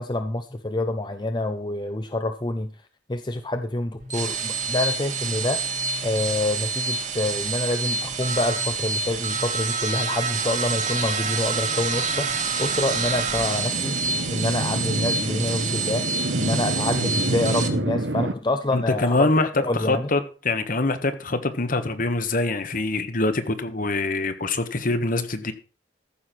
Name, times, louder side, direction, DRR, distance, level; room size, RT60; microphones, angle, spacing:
voice 1, 0.0-2.7 3.1-5.6 6.0-14.0 14.3-16.0 16.4-19.3 19.6-20.1, left 2 dB, 25° left, 0.8 m, -27 dB
sound 1, 4.0-17.7, right 4 dB, 45° right, 1.8 m, -27 dB
sound 2, 10.6-18.3, right 1 dB, 75° right, 1.2 m, -29 dB
voice 2, 18.7-25.5, left 2 dB, 50° left, 1.5 m, -24 dB
14.5 x 6.6 x 5.9 m
head